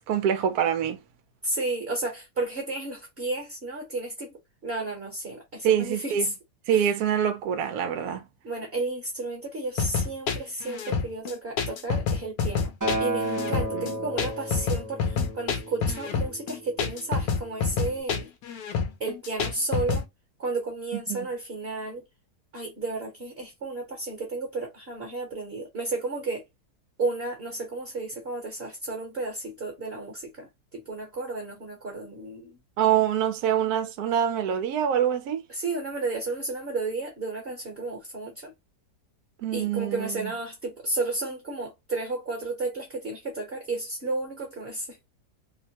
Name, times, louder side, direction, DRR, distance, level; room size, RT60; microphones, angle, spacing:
voice 1, 0.1-1.0 5.6-6.3 6.7-8.2 13.7-13.9 21.1-21.3 32.8-35.4 39.4-40.3, right 9 dB, 70° right, 1.0 m, -25 dB
voice 2, 1.4-6.3 6.7-7.0 8.4-12.7 13.0-18.3 19.0-20.1 20.4-22.0 22.5-26.4 27.0-32.6 35.5-38.5 39.5-45.0, right 3 dB, 45° right, 1.0 m, -32 dB
sound 1, 9.8-20.1, left 5 dB, 70° left, 1.0 m, -28 dB
Acoustic guitar, 12.8-17.1 17.9-18.0, right 1 dB, 20° right, 0.5 m, -33 dB
2.9 x 2.1 x 2.8 m
omnidirectional pair, 1.8 m